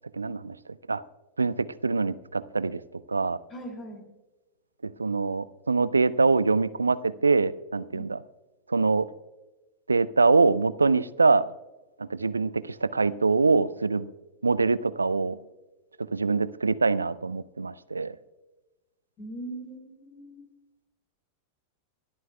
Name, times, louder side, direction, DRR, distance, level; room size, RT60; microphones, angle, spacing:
voice 1, 0.1-0.6 0.9-1.0 1.4-2.8 3.1-3.4 4.8-8.2 8.7-9.1 9.9-11.5 12.0-14.1 14.4-15.4 16.0-18.1, right 4 dB, 80° right, 18 dB, 0.4 m, -24 dB
voice 2, 3.5-4.1 19.2-20.5, right 1 dB, 30° left, 2 dB, 2.6 m, -40 dB
25.0 x 12.5 x 2.3 m, 1.1 s
figure-of-eight pair, 90°, 0 cm